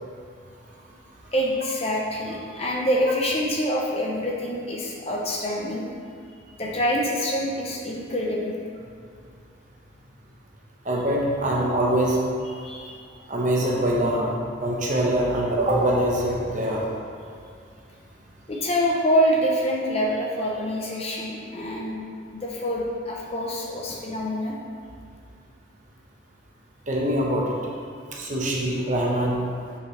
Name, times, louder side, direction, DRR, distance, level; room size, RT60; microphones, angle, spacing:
voice 1, 1.3-5.9 6.6-8.6 12.6-13.0 18.5-22.0 22.3-24.6, equal, 30° left, -2 dB, 0.7 m, -26 dB
voice 2, 10.8-12.2 13.3-16.8 26.9-27.5 28.1-29.4, right 1 dB, 40° right, -3 dB, 0.9 m, -23 dB
6.6 x 5.5 x 3.3 m, 2.3 s
head